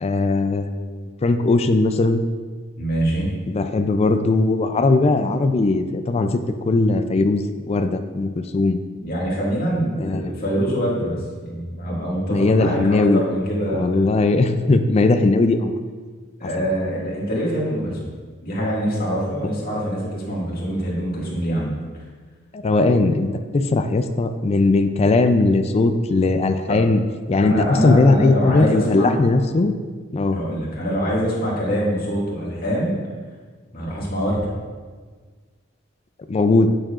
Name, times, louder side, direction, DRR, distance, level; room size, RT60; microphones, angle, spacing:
voice 1, 0.0-2.2 3.5-6.4 6.7-8.8 10.0-10.3 12.3-13.2 13.7-15.8 16.6-16.7 22.5-23.3 23.5-27.0 27.3-29.7 30.1-30.4 36.3-36.7, left 3 dB, 30° left, 8 dB, 0.4 m, -19 dB
voice 2, 2.8-3.3 9.0-11.2 11.4-13.8 16.4-18.1 18.4-21.8 26.7-26.8 27.4-29.2 30.3-32.9 33.7-34.5, equal, 50° left, -5 dB, 2.0 m, -24 dB
8.8 x 6.7 x 2.5 m, 1.5 s
head